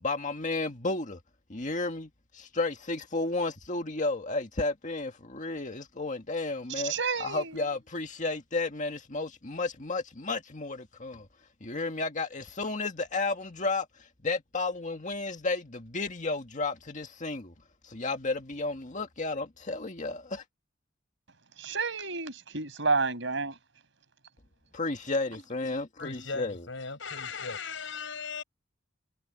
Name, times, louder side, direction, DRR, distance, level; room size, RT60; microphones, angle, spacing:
voice 1, 0.0-1.2 1.5-6.9 7.2-11.3 11.6-17.5 17.8-20.4 24.7-26.7, left 3 dB, 40° left, 1.9 m, -32 dB
voice 2, 6.8-7.5 21.6-23.5, right 4 dB, 70° right, 6.2 m, -30 dB
voice 3, 26.0-28.4, left 5 dB, 75° left, 6.8 m, -37 dB
head